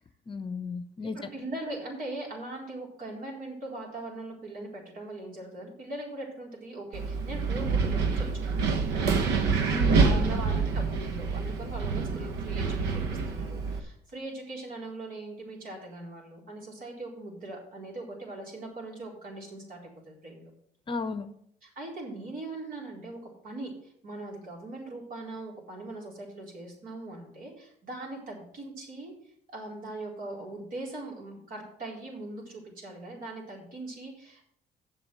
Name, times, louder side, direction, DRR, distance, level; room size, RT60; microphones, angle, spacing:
voice 1, 0.3-1.2 9.7-10.4 20.9-21.3, left 4 dB, 30° left, 10 dB, 0.8 m, -34 dB
voice 2, 1.1-8.7 9.0-9.1 9.9-20.5 21.6-23.2 23.4-29.1 29.5-34.5, right 2 dB, 55° right, -2 dB, 4.2 m, -40 dB
Wind, 6.9-13.8, right 4 dB, 85° right, 1.1 m, -27 dB
7.8 x 6.1 x 7.7 m, 0.70 s
cardioid pair, 110°, 17 cm